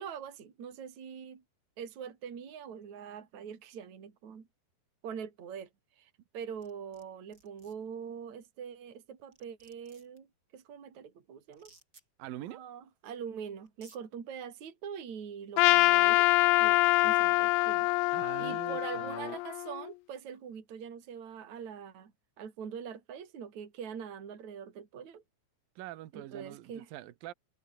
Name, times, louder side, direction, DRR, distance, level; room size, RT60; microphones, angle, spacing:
voice 1, 0.0-1.4 1.8-4.5 5.0-5.7 6.0-10.3 10.5-11.7 12.5-16.3 16.6-17.9 18.4-22.1 22.4-25.2 26.1-26.9, right 7 dB, 45° right, 4.3 m, -43 dB
sound 1, 6.6-7.0 7.3-7.7 8.9-9.0 9.3-10.2 11.5-12.0 13.1-13.2 13.7-14.0, right 2 dB, 20° right, 6.1 m, -59 dB
voice 2, 12.2-12.6 18.1-19.4 25.8-27.3, right 14 dB, 65° right, 2.9 m, -44 dB
Trumpet, 15.6-19.9, left 24 dB, 90° left, 2.8 m, -25 dB
omnidirectional pair, 5.0 m